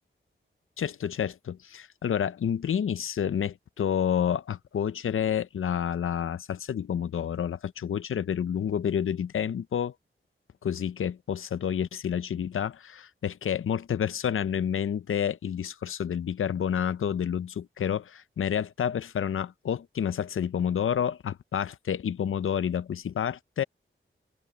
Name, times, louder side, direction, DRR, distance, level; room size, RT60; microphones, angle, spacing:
voice 1, 0.8-9.9 10.6-23.6, left 8 dB, 75° left, 0.5 m, -29 dB
wide cardioid pair, 110°, 21 cm